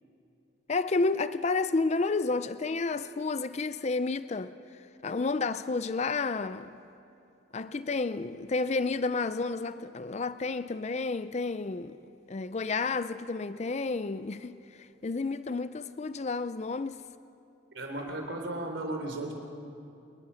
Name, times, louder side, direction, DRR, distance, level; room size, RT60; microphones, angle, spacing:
voice 1, 0.7-4.5 5.0-6.7 7.5-12.0 12.3-17.0, left 3 dB, 35° left, 0.4 m, -31 dB
voice 2, 17.7-19.3, right 2 dB, 70° right, 3.8 m, -35 dB
30.0 x 20.0 x 5.8 m
head